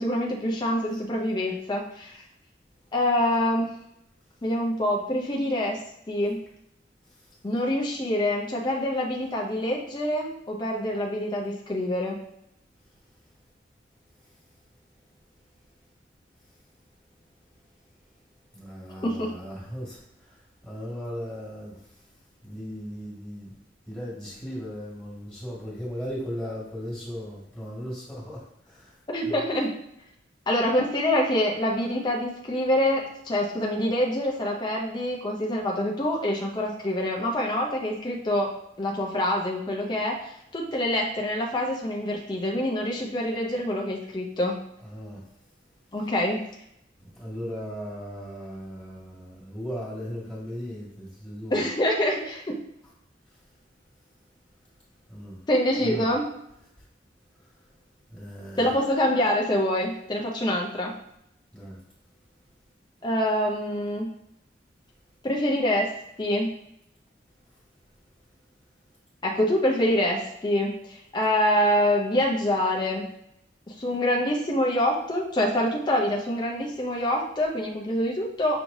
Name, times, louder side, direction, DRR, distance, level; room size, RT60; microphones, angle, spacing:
voice 1, 0.0-2.2 2.9-3.7 4.4-5.8 6.1-6.4 7.4-12.2 19.0-19.4 29.1-29.7 30.5-38.5 38.8-44.5 45.9-46.4 51.5-52.6 55.5-56.3 58.6-60.9 63.0-64.1 65.2-65.9 66.2-66.5 69.2-73.1 73.8-78.6, left 1 dB, 25° left, -1 dB, 0.5 m, -26 dB
voice 2, 18.5-20.4 20.6-21.8 22.4-23.5 23.9-28.9 29.2-29.4 44.8-45.2 47.0-51.6 55.1-55.4 55.8-56.1 58.1-58.7 61.5-61.8, equal, 5° left, -6 dB, 1.7 m, -37 dB
6.0 x 3.1 x 2.6 m, 0.78 s
head